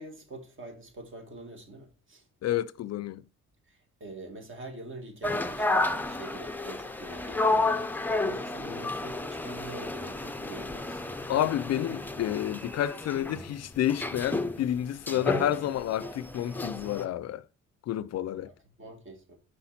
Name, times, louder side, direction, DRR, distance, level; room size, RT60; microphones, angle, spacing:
voice 1, 0.0-2.2 3.7-11.2 18.5-19.4, right 2 dB, 40° right, 2.1 m, -45 dB
voice 2, 2.4-3.2 7.5-7.6 8.7-8.9 11.3-17.5 17.9-18.5, left 12 dB, 60° left, 0.4 m, -30 dB
sound 1, 5.2-17.0, left 2 dB, 5° left, 0.6 m, -31 dB
5.7 x 4.8 x 4.2 m
cardioid pair, 90°, 30 cm